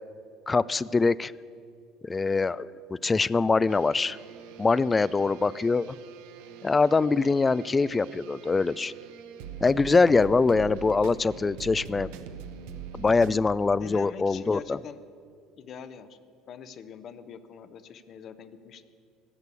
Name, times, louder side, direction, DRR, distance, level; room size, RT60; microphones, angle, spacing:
voice 1, 0.5-1.3 2.0-4.2 4.6-5.9 6.6-8.9 9.6-12.1 13.0-14.8, left 4 dB, 25° left, 20 dB, 0.3 m, -23 dB
sound 1, 3.7-13.4, right 7 dB, 75° right, 0.7 m, -43 dB
voice 2, 13.8-15.0 15.6-16.2 16.5-18.8, left 7 dB, 50° left, 12 dB, 0.8 m, -43 dB
14.0 x 6.7 x 8.3 m, 2.3 s
hypercardioid pair, 70°, 0 cm